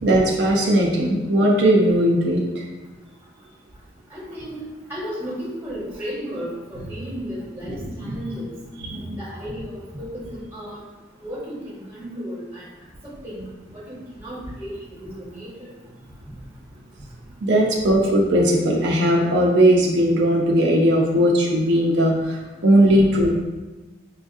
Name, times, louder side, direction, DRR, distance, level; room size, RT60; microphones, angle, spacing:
voice 1, 0.0-2.6 7.7-7.8 8.8-9.2 17.4-23.4, right 1 dB, 70° right, -2 dB, 0.6 m, -18 dB
voice 2, 4.1-4.6 4.9-8.5 9.2-10.8 11.2-12.7 13.0-13.4 13.7-15.7, equal, 10° right, -7 dB, 1.1 m, -34 dB
5.6 x 2.4 x 2.6 m, 1.2 s
head